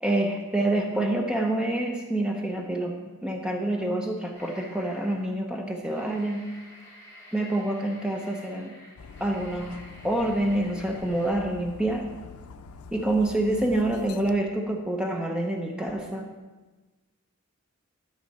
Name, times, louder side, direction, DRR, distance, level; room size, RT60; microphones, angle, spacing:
voice 1, 0.0-6.4 7.3-8.8 9.2-12.0 12.9-16.3, right 1 dB, 5° right, 1 dB, 0.6 m, -27 dB
sound 1, 4.3-5.4 5.8-11.4, equal, 15° left, 2.8 m, -50 dB
Dog, 9.0-14.3, left 5 dB, 90° left, 0.5 m, -45 dB
12.5 x 5.3 x 4.1 m, 1.2 s
head